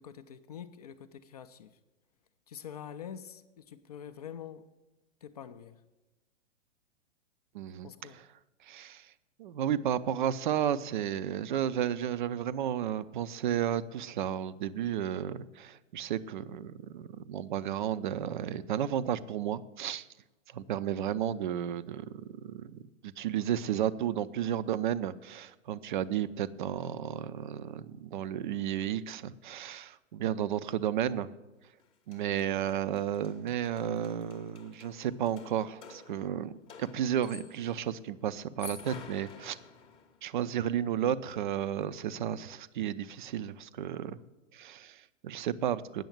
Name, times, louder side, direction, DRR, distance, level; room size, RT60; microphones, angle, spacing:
voice 1, 0.0-1.8 2.5-4.7 5.2-5.8 7.8-8.2, left 8 dB, 30° left, 10 dB, 0.4 m, -46 dB
voice 2, 7.5-7.9 8.1-8.2 8.6-9.1 9.4-20.1 20.5-22.1 22.4-31.3 32.1-36.5 36.8-39.6 40.2-44.2 44.5-46.0, right 10 dB, 40° right, 15 dB, 0.5 m, -33 dB
sound 1, 31.8-31.9 32.1-37.8 38.4-40.2, left 4 dB, 15° left, 0.7 m, -50 dB
9.2 x 6.9 x 9.0 m, 1.1 s
figure-of-eight pair, 115°, 39 cm